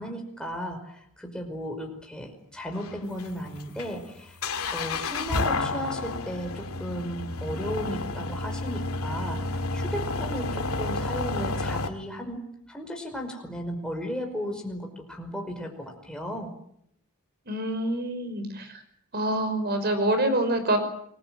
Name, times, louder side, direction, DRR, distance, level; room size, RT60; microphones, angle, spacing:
voice 1, 0.0-4.4 4.7-16.5, equal, 5° left, 2 dB, 5.2 m, -35 dB
sound 1, 2.7-11.9, left 3 dB, 80° left, 2.4 m, -31 dB
voice 2, 17.5-18.8 19.1-20.8, right 1 dB, 45° right, 9 dB, 5.5 m, -26 dB
28.5 x 21.0 x 7.8 m, 0.72 s
head